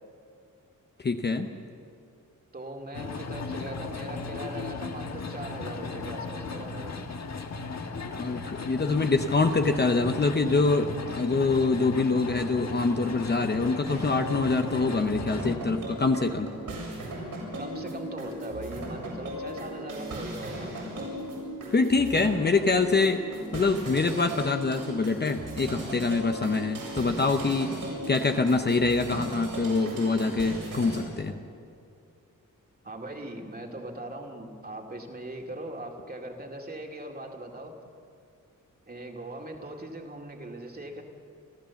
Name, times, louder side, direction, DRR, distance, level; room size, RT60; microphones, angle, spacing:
voice 1, 1.0-1.5 8.2-16.5 21.7-23.2 23.5-31.4, left 3 dB, 30° left, 6 dB, 0.8 m, -25 dB
voice 2, 2.5-7.0 17.6-21.1 32.8-37.7 38.9-41.0, right 1 dB, 30° right, 1 dB, 2.3 m, -40 dB
sound 1, 2.9-15.5, left 4 dB, 55° left, 1.5 m, -36 dB
sound 2, 13.9-31.0, right 1 dB, 85° right, 7.4 m, -37 dB
29.5 x 13.0 x 7.1 m, 2.3 s
wide cardioid pair, 140°, 32 cm